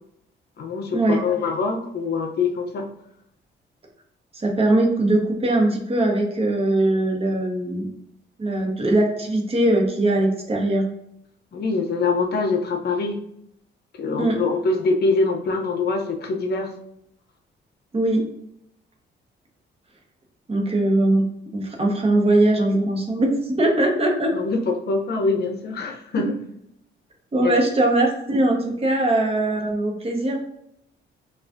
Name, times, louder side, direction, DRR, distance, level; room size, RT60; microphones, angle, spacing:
voice 1, 0.6-2.9 11.5-13.2 14.0-16.7 24.3-26.3 27.4-27.5, left 3 dB, 55° left, 3 dB, 0.7 m, -24 dB
voice 2, 4.3-7.9 8.4-10.9 14.2-14.4 17.9-18.2 20.5-21.3 21.5-24.3 27.3-30.4, right 1 dB, 30° right, 0 dB, 1.0 m, -21 dB
5.7 x 2.4 x 2.5 m, 0.75 s
cardioid pair, 90°, 20 cm